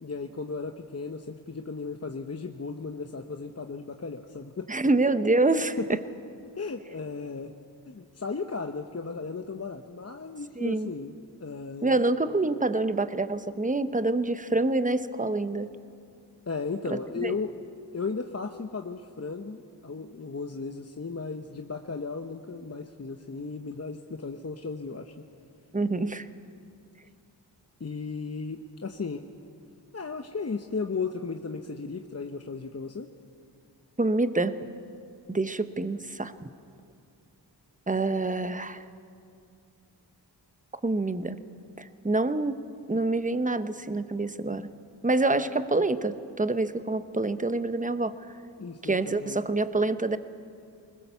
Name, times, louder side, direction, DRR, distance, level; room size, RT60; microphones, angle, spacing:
voice 1, 0.0-4.9 5.5-6.0 6.5-7.5 7.9-12.1 16.5-17.5 17.9-25.1 27.8-29.2 29.9-33.1 48.6-49.5, left 4 dB, 35° left, 6 dB, 1.0 m, -35 dB
voice 2, 4.7-5.8 10.5-10.9 11.8-15.7 17.2-17.3 25.7-26.3 34.0-34.6 35.3-36.5 37.9-38.8 40.8-41.4 41.8-42.6 42.9-44.7 45.0-48.2 48.8-50.2, right 2 dB, 15° right, 12 dB, 1.0 m, -26 dB
20.5 x 20.5 x 7.0 m, 2.4 s
cardioid pair, 40°, 44 cm